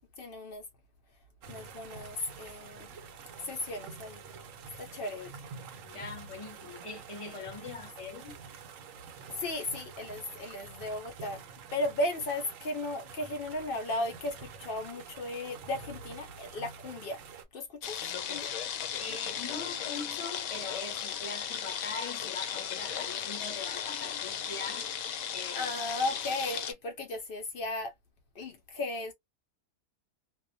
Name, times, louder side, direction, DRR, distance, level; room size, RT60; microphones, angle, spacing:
voice 1, 0.2-0.6 1.5-2.9 3.4-4.2 4.8-5.4 9.3-11.4 11.7-17.2 17.5-18.0 18.3-18.5 25.5-27.9 28.4-29.1, left 2 dB, 90° left, 0.4 m, -35 dB
sound 1, 1.4-17.5, right 5 dB, 65° right, 0.8 m, -48 dB
voice 2, 5.8-8.3 19.0-24.9 25.3-25.7, left 4 dB, 30° left, 0.7 m, -42 dB
sound 2, 17.8-26.7, left 8 dB, 70° left, 0.9 m, -36 dB
2.4 x 2.1 x 2.5 m
omnidirectional pair, 1.6 m